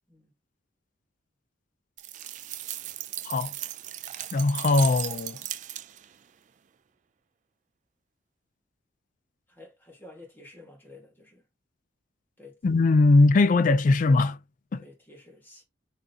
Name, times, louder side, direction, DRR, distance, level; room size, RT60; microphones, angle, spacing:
sound 1, 2.0-6.2, right 13 dB, 40° right, 0.3 m, -36 dB
voice 1, 4.3-5.4 12.6-14.4 14.7-14.8, left 3 dB, 40° left, 0.3 m, -20 dB
voice 2, 9.5-11.4 12.4-12.6 14.8-15.6, left 2 dB, 10° left, 1.5 m, -50 dB
6.1 x 2.5 x 2.7 m
head